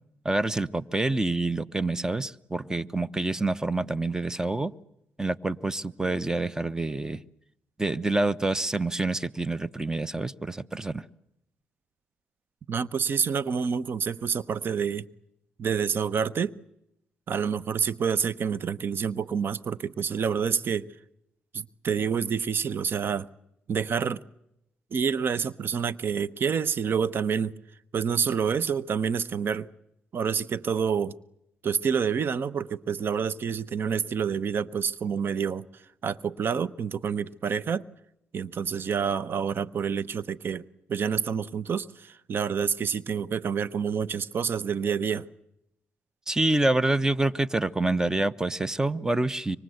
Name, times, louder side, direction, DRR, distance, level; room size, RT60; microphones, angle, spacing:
voice 1, 0.2-4.7 5.2-7.2 7.8-11.0 46.3-49.6, right 2 dB, 15° right, 1.0 m, -27 dB
voice 2, 12.7-15.0 15.6-16.5 17.3-20.9 21.5-23.3 23.7-24.2 24.9-27.5 27.9-29.7 30.1-31.1 31.6-35.6 36.0-37.8 38.3-45.3, right 6 dB, 55° right, 1.0 m, -28 dB
26.0 x 24.5 x 8.0 m
cardioid pair, 75°, 4 cm